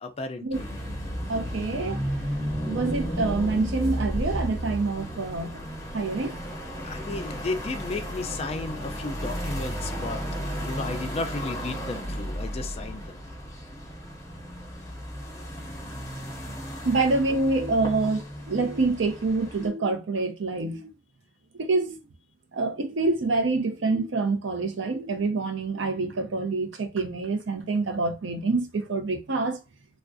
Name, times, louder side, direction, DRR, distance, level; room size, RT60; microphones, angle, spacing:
voice 1, 0.0-0.7 2.7-3.0 6.8-10.2 10.6-13.3 15.3-15.4, left 3 dB, 30° left, 0.3 m, -34 dB
sound 1, 0.5-19.7, equal, 15° left, 0.7 m, -33 dB
voice 2, 1.3-2.0 2.7-5.6 5.9-6.4 16.8-20.9 21.5-22.0 22.5-29.6, right 3 dB, 65° right, 0.6 m, -26 dB
3.4 x 2.3 x 2.5 m
head